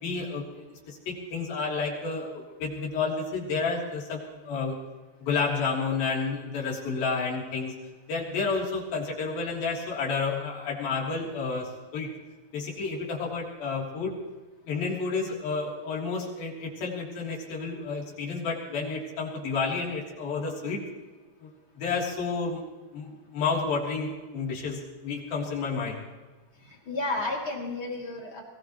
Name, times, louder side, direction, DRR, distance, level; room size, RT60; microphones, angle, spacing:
voice 1, 0.0-4.8 5.2-7.7 8.1-12.1 12.5-14.2 14.7-20.8 21.4-21.5 21.8-22.6 22.9-26.0, left 4 dB, 80° left, -3 dB, 5.1 m, -30 dB
voice 2, 26.6-28.4, left 2 dB, 35° left, -1 dB, 3.4 m, -32 dB
22.0 x 19.0 x 3.1 m, 1.2 s
omnidirectional pair, 4.2 m